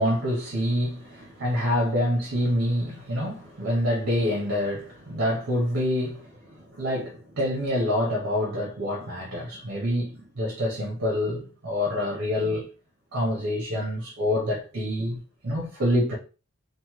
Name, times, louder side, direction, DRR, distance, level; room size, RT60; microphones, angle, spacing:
voice 1, 0.0-12.7 13.1-16.2, left 1 dB, 55° right, 0.7 m, -27 dB
3.0 x 2.1 x 2.9 m
head